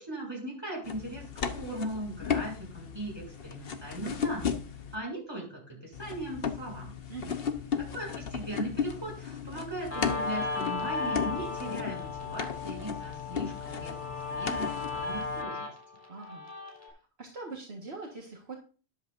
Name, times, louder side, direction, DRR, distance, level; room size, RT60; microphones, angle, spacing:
voice 1, 0.0-4.6 4.9-6.9 7.8-14.0 14.3-15.7, right 1 dB, 20° right, -2 dB, 7.2 m, -38 dB
sound 1, 0.8-4.9 5.9-15.4, left 7 dB, 55° left, 1.1 m, -36 dB
Guitar, 9.9-16.9, left 3 dB, 10° left, 3.7 m, -36 dB
voice 2, 16.1-16.5 16.8-18.6, right 3 dB, 60° right, 0 dB, 1.9 m, -43 dB
13.0 x 10.5 x 2.6 m, 0.36 s
omnidirectional pair, 1.2 m